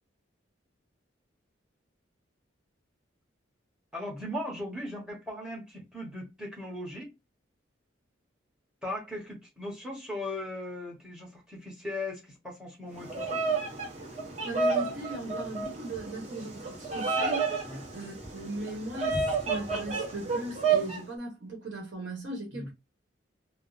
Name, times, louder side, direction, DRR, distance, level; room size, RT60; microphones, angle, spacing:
voice 1, 3.9-7.1 8.8-13.4 17.7-17.8 22.5-22.7, left 1 dB, 5° right, 1.2 m, -38 dB
Bird vocalization bird call bird song, 13.0-21.0, right 4 dB, 35° right, 1.0 m, -30 dB
voice 2, 14.4-17.6 17.9-22.7, right 1 dB, 60° right, 1.1 m, -38 dB
3.4 x 2.0 x 2.7 m
head